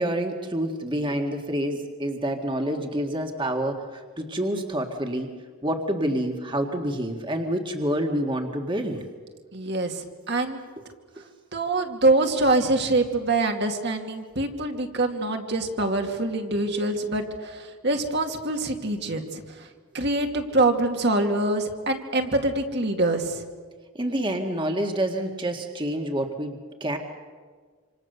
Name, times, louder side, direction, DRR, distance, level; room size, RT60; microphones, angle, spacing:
voice 1, 0.0-5.3 5.6-9.0 11.2-11.3 24.0-27.0, right 1 dB, 25° right, 3 dB, 1.8 m, -28 dB
voice 2, 9.5-10.6 11.5-19.7 19.9-23.4, right 2 dB, 50° right, 4 dB, 2.4 m, -25 dB
27.0 x 27.0 x 6.8 m, 1.5 s
head